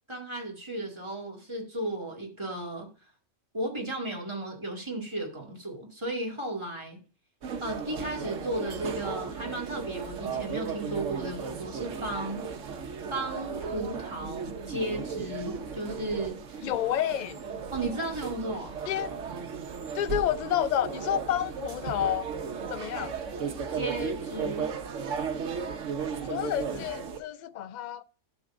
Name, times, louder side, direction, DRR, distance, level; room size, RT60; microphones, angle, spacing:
voice 1, 0.1-2.9 3.5-7.0 7.6-12.4 13.1-16.7 17.7-18.8 23.7-24.7, right 1 dB, 20° right, 2.1 m, -34 dB
sound 1, 7.4-27.2, right 6 dB, 75° right, 1.3 m, -35 dB
voice 2, 16.6-17.4 18.9-19.1 19.9-22.3 22.7-23.2 26.3-28.0, left 11 dB, 65° left, 0.4 m, -29 dB
12.0 x 7.2 x 2.5 m
omnidirectional pair, 1.3 m